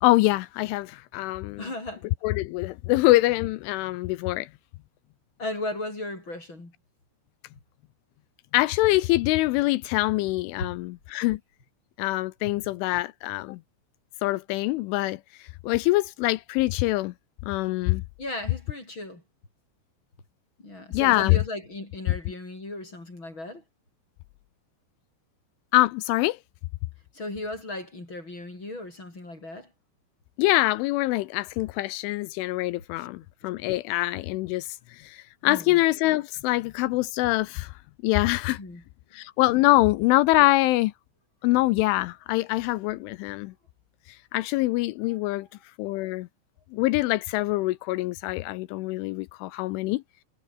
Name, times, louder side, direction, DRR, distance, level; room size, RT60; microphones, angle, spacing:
voice 1, 0.0-1.7 2.2-4.5 8.5-11.4 12.0-13.6 14.2-15.2 15.6-17.1 17.4-18.0 20.9-21.4 25.7-26.4 30.4-37.7 38.0-38.6 39.1-40.9 41.4-43.5 44.3-45.5 45.8-46.3 46.7-50.2, left 19 dB, 80° left, 3.0 m, -24 dB
voice 2, 1.6-2.1 2.9-3.0 5.4-6.7 10.6-10.7 18.2-19.2 20.6-23.6 27.1-29.7 33.0-33.1 35.4-35.8 38.6-38.8, left 2 dB, 25° left, 6.7 m, -36 dB
omnidirectional pair, 5.8 m